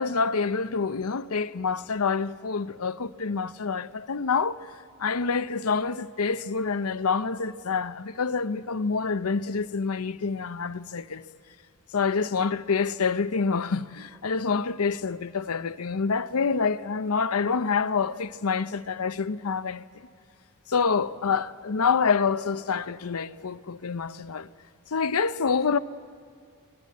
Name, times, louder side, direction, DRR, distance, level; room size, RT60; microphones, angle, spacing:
voice 1, 0.0-4.7 5.0-11.2 11.9-19.8 20.7-24.5 24.9-25.8, left 5 dB, 90° left, 0.7 m, -27 dB
22.5 x 21.0 x 8.5 m
head